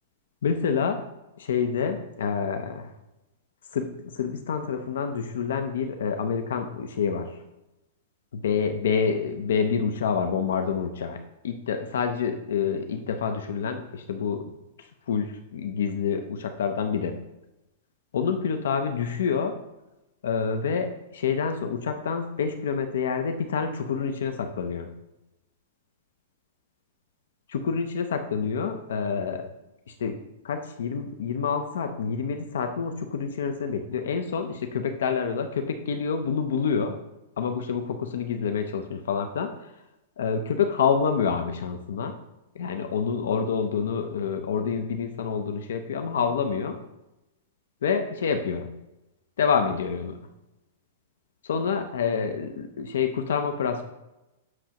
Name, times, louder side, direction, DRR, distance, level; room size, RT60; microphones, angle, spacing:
voice 1, 0.4-1.0 1.4-2.9 3.7-7.3 8.3-14.4 14.8-17.2 18.1-19.6 20.2-24.9 27.5-29.5 30.0-30.2 30.4-37.0 37.4-39.7 40.2-42.1 42.5-46.8 47.8-48.7 49.4-50.2 51.4-53.8, left 6 dB, 75° left, 6 dB, 0.6 m, -27 dB
7.8 x 6.2 x 3.0 m, 0.96 s
supercardioid pair, 180°, 0 cm